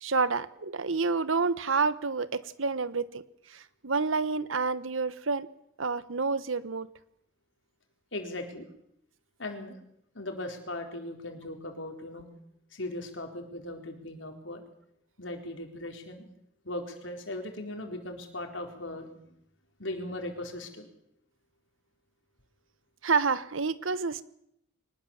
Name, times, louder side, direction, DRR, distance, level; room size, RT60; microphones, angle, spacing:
voice 1, 0.0-3.2 3.5-5.5 5.8-6.9 23.0-24.2, right 4 dB, 85° right, 15 dB, 1.2 m, -29 dB
voice 2, 8.1-8.7 9.4-9.8 10.1-12.2 12.7-14.6 15.2-16.3 16.6-19.1 19.8-20.9, left 1 dB, 70° left, 4 dB, 4.3 m, -38 dB
24.0 x 19.5 x 7.3 m, 0.75 s
head